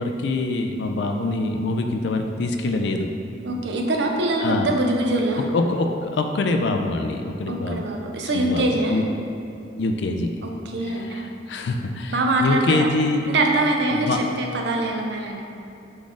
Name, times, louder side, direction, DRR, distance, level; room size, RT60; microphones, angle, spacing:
voice 1, 0.0-3.1 4.4-4.7 5.5-7.8 8.3-9.0 9.8-10.3 10.9-13.3 13.9-14.2, left 2 dB, 65° left, 5 dB, 0.4 m, -24 dB
voice 2, 3.4-5.5 7.4-9.0 10.4-11.2 12.1-12.9 13.3-15.4, right 2 dB, 65° right, 1 dB, 0.5 m, -23 dB
3.8 x 3.7 x 3.6 m, 2.7 s
head